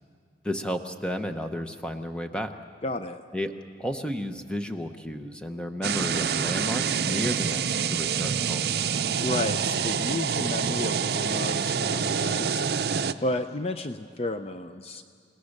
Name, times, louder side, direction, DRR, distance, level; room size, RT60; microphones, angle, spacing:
voice 1, 0.4-2.6 3.3-8.7, equal, 5° left, 6 dB, 0.8 m, -32 dB
voice 2, 2.8-3.2 9.2-12.7 13.2-15.0, left 2 dB, 35° left, 9 dB, 0.5 m, -32 dB
sound 1, 5.8-13.1, right 6 dB, 60° right, 0.6 m, -27 dB
29.0 x 18.0 x 6.5 m, 2.1 s
head